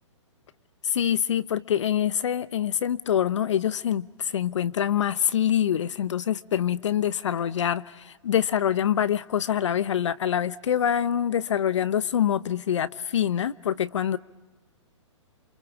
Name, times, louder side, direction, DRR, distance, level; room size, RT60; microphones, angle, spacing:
voice 1, 0.8-14.2, left 9 dB, 70° left, 0.8 m, -25 dB
28.5 x 25.5 x 7.3 m
hypercardioid pair, 135°, 16 cm